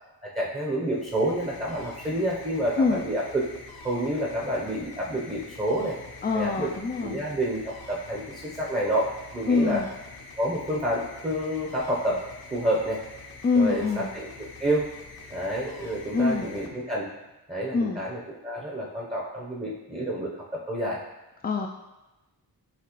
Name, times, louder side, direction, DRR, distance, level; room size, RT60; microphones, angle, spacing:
voice 1, 0.2-3.4 3.8-6.0 6.3-6.7 7.0-9.8 10.4-12.2 12.5-13.0 13.6-14.9 15.3-17.1 17.5-21.0, right 1 dB, 15° right, -3 dB, 0.8 m, -29 dB
sound 1, 0.8-17.3, left 4 dB, 60° left, 0.7 m, -45 dB
voice 2, 6.2-7.2 9.5-9.9 13.4-14.1 16.1-16.5 17.7-18.0 21.4-21.7, left 4 dB, 25° left, 1 dB, 0.3 m, -24 dB
5.9 x 2.8 x 3.0 m, 1.0 s
cardioid pair, 70°, 42 cm